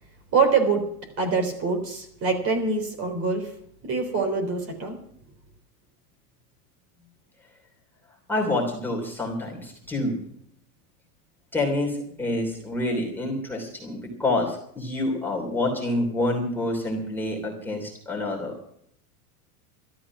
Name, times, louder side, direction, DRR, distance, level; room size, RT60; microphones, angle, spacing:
voice 1, 0.3-0.9 1.2-3.5 3.8-5.0, right 4 dB, 30° right, 4 dB, 3.7 m, -24 dB
voice 2, 8.3-10.2 11.5-18.7, left 2 dB, 5° left, -2 dB, 3.1 m, -27 dB
13.5 x 12.5 x 6.1 m, 0.67 s
supercardioid pair, 145°, 46 cm